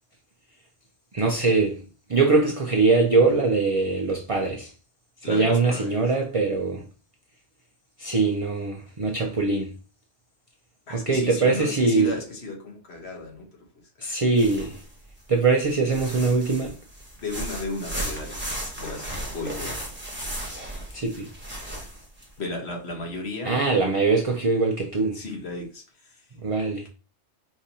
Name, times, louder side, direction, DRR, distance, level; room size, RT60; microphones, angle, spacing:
voice 1, 1.1-1.8 2.1-4.7 5.2-6.9 8.0-9.8 10.9-12.2 14.0-14.8 15.3-16.8 20.9-21.3 23.4-25.2 26.4-26.9, right 3 dB, 50° right, 0.4 m, -22 dB
voice 2, 5.2-6.0 10.9-13.5 14.0-14.2 17.2-18.4 18.8-19.8 22.4-23.6 25.1-25.8, left 2 dB, 60° left, 1.3 m, -34 dB
sound 1, 14.3-15.1 15.6-22.2, right 1 dB, 10° right, 0.8 m, -35 dB
5.0 x 2.7 x 2.8 m
omnidirectional pair, 1.3 m